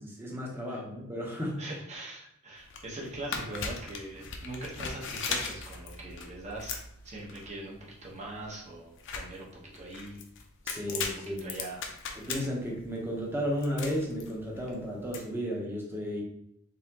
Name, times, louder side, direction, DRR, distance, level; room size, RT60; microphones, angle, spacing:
voice 1, 0.0-1.6 10.6-11.6 12.2-16.2, equal, 10° right, -2 dB, 0.9 m, -33 dB
voice 2, 1.6-10.2 10.9-11.1 11.4-11.8, right 2 dB, 30° right, -3 dB, 1.1 m, -42 dB
sound 1, 2.6-15.2, left 5 dB, 55° left, 0.6 m, -39 dB
4.1 x 3.6 x 2.9 m, 0.74 s
head